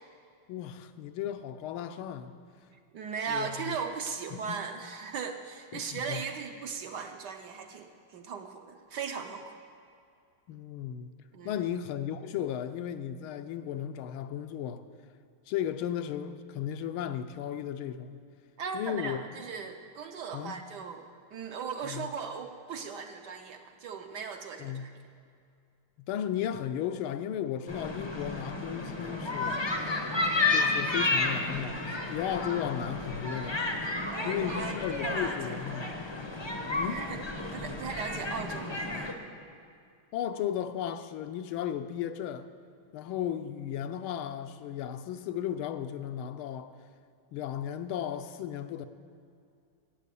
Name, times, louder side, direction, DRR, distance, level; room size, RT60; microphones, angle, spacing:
voice 1, 0.5-2.4 3.3-3.8 4.3-4.6 5.7-6.2 10.5-11.1 11.4-14.8 15.5-18.2 18.7-19.2 20.3-20.6 21.8-22.1 24.6-24.9 26.0-29.9 30.5-33.6 34.2-35.9 36.7-37.0 40.1-42.5 42.9-46.7 47.3-48.9, left 10 dB, 85° left, 1.5 m, -35 dB
voice 2, 2.9-9.6 11.3-11.6 18.6-24.9 34.1-35.6 36.9-39.2, right 6 dB, 65° right, 1.1 m, -38 dB
sound 1, 27.7-39.1, left 2 dB, 35° left, 0.4 m, -32 dB
12.5 x 8.4 x 8.3 m
omnidirectional pair, 2.3 m